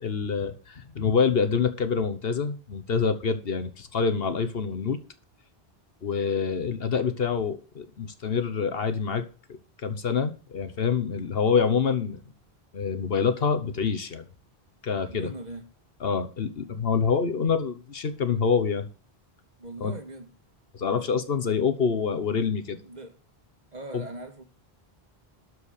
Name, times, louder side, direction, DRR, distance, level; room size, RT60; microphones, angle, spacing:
voice 1, 0.0-5.0 6.0-9.3 9.8-12.2 12.7-14.2 14.8-15.3 16.0-18.9 19.8-19.9 20.7-22.8 23.9-24.0, left 6 dB, 70° left, 1.3 m, -26 dB
voice 2, 15.1-15.7 19.6-20.3 22.5-23.2 23.7-24.4, right 2 dB, 45° right, 1.8 m, -41 dB
12.5 x 4.8 x 6.6 m
omnidirectional pair, 1.0 m